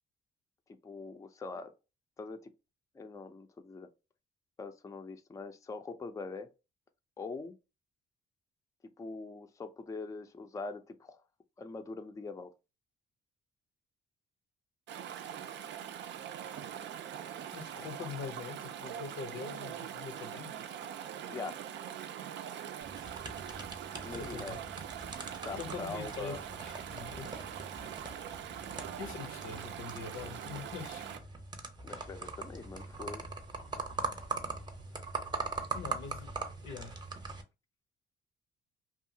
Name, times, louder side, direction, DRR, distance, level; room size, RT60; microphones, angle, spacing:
voice 1, 0.8-1.7 2.2-2.5 2.9-3.9 4.6-6.5 7.2-7.6 9.0-11.2 11.6-12.5 21.3-21.6 24.0-24.6 25.4-26.4 31.8-33.2, left 3 dB, 15° left, 0.4 m, -43 dB
Chatter / Stream, 14.9-31.2, right 9 dB, 65° right, 0.4 m, -43 dB
voice 2, 17.5-20.5 24.0-24.6 25.5-27.6 29.0-31.1 35.7-36.3 36.6-37.0, left 5 dB, 80° left, 0.7 m, -44 dB
sound 1, 22.8-37.4, right 4 dB, 20° right, 0.7 m, -42 dB
2.7 x 2.4 x 2.7 m
cardioid pair, 90°, 20 cm